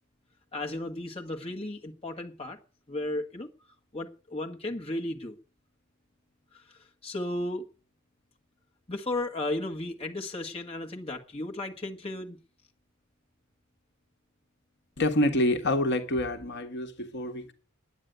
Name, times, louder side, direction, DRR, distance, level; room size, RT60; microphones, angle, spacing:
voice 1, 0.5-2.6 2.9-3.5 3.9-5.4 6.5-7.6 8.9-12.4, left 1 dB, 25° left, 1.6 m, -34 dB
voice 2, 15.0-17.5, left 1 dB, 50° left, 1.5 m, -27 dB
9.6 x 9.4 x 9.2 m
head